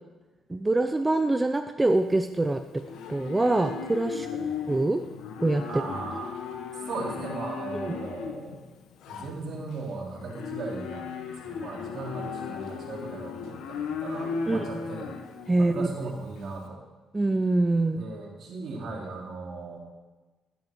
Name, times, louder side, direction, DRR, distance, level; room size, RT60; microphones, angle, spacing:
voice 1, 0.5-2.6 3.1-4.3 4.7-5.0 5.4-5.8 7.8-8.0 14.5-14.6 15.5-15.9 17.1-18.0, right 2 dB, 15° right, 7 dB, 0.6 m, -24 dB
Livestock farm animals working animals, 1.9-16.6, left 6 dB, 85° left, 1.1 m, -37 dB
voice 2, 5.7-6.3 6.9-8.6 9.1-15.1 15.6-16.8 17.9-19.8, right 3 dB, 65° right, -2 dB, 3.4 m, -37 dB
15.5 x 9.4 x 4.7 m, 1.2 s
cardioid pair, 90°, 0 cm